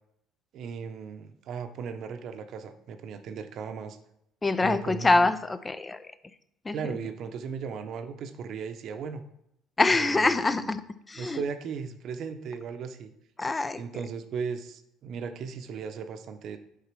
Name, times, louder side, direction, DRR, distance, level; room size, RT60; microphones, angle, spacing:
voice 1, 0.5-4.0 4.6-5.3 6.7-9.2 9.9-10.7 11.2-13.1 13.8-16.6, right 6 dB, 60° right, 9 dB, 0.8 m, -37 dB
voice 2, 4.4-6.1 6.6-6.8 9.8-10.8 11.1-11.4 13.4-13.8, left 3 dB, 20° left, 12 dB, 0.6 m, -25 dB
8.4 x 4.2 x 6.0 m, 0.80 s
supercardioid pair, 90°, 0 cm